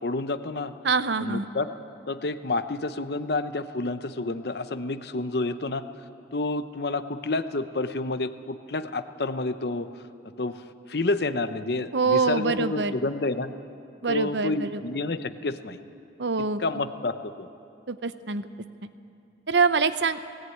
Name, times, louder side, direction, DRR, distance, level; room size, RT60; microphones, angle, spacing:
voice 1, 0.0-0.7 1.2-1.7 2.1-5.9 6.3-10.0 10.4-13.5 14.1-15.8 16.4-17.5, left 2 dB, 60° left, 11 dB, 0.8 m, -29 dB
voice 2, 0.8-1.5 11.9-12.9 14.0-14.8 16.2-16.6 17.9-18.4 18.8-18.9 19.5-20.2, right 4 dB, 70° right, 12 dB, 0.8 m, -24 dB
18.0 x 17.5 x 9.3 m, 2.6 s
head